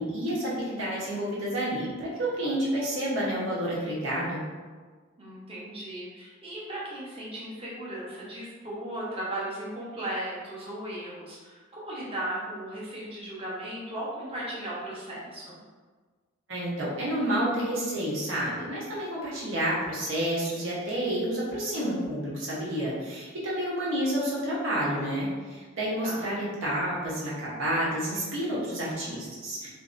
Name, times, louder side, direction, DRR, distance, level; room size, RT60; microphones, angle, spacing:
voice 1, 0.0-4.4 16.5-29.7, right 1 dB, 80° right, -7 dB, 1.0 m, -29 dB
voice 2, 5.2-15.6 26.0-26.3, right 1 dB, 30° right, -6 dB, 0.8 m, -36 dB
2.7 x 2.6 x 2.5 m, 1.4 s
head